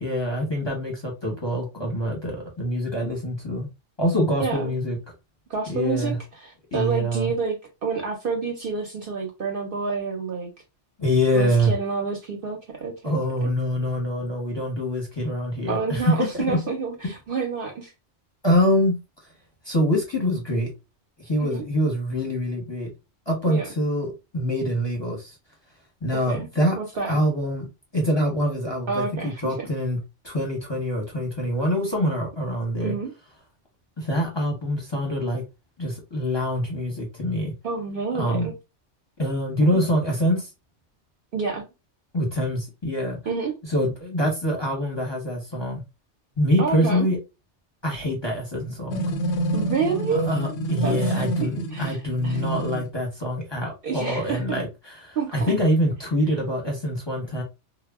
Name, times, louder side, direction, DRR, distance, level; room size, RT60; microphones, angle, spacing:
voice 1, 0.0-3.7 4.0-5.0 5.7-6.2 6.7-7.3 11.0-11.7 13.0-16.6 18.4-19.0 19.6-20.7 21.2-22.9 23.3-25.4 26.0-26.8 27.1-27.7 27.9-30.0 30.2-32.9 34.0-35.4 35.8-37.5 38.1-38.5 39.2-40.5 42.1-43.2 43.7-45.8 46.4-47.2 47.8-49.1 50.1-57.4, equal, 25° left, 0.7 m, -25 dB
voice 2, 4.4-4.7 5.5-10.5 11.3-13.5 15.7-17.9 21.4-21.6 23.5-23.7 26.3-26.5 26.8-27.2 28.9-29.7 32.8-33.1 37.6-38.5 41.3-41.6 43.3-43.5 46.6-47.1 49.5-50.3 50.8-52.0 52.2-52.4 53.8-54.6 55.2-55.5, right 5 dB, 60° right, 0.7 m, -29 dB
sound 1, 48.9-52.9, right 1 dB, 90° left, 0.9 m, -28 dB
2.1 x 2.0 x 3.4 m
omnidirectional pair, 1.2 m